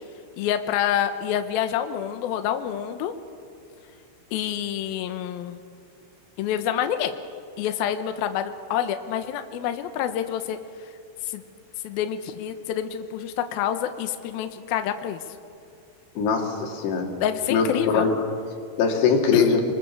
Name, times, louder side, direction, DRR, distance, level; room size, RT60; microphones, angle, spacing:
voice 1, 0.3-3.1 4.3-5.6 6.4-7.2 7.6-10.9 11.2-11.4 11.8-15.2 17.2-18.1 19.3-19.6, left 10 dB, 85° left, 8 dB, 2.1 m, -27 dB
voice 2, 16.2-17.1 17.5-18.1 18.8-19.6, left 5 dB, 60° left, 2 dB, 4.3 m, -21 dB
28.0 x 22.5 x 7.1 m, 2.4 s
omnidirectional pair, 5.8 m